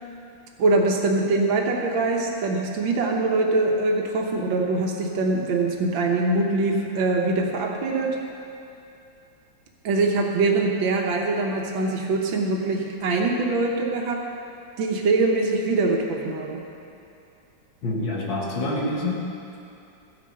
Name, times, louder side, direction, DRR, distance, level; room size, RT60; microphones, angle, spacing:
voice 1, 0.6-8.2 9.8-14.3 14.8-16.6, right 3 dB, 90° right, 1 dB, 1.8 m, -23 dB
voice 2, 17.8-19.2, left 2 dB, 75° left, -3 dB, 2.3 m, -26 dB
14.5 x 8.5 x 5.5 m, 2.7 s
omnidirectional pair, 2.1 m